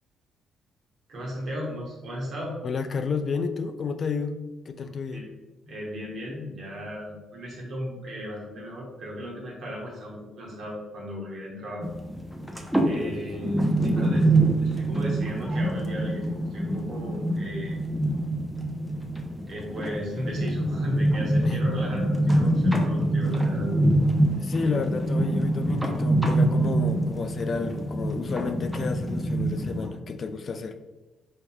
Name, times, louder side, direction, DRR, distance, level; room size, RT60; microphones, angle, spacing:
voice 1, 1.1-2.6 4.8-5.3 5.6-11.9 12.8-14.2 14.6-17.8 19.5-23.7 24.6-24.7, equal, 65° right, -3 dB, 1.2 m, -36 dB
voice 2, 2.6-4.4 4.7-5.2 12.9-13.3 13.5-14.1 21.4-21.6 24.4-30.8, left 5 dB, 50° left, 9 dB, 0.3 m, -31 dB
sound 1, 11.8-29.9, right 1 dB, 5° right, 0.7 m, -25 dB
4.2 x 3.2 x 2.3 m, 1.1 s
supercardioid pair, 60°, 0 cm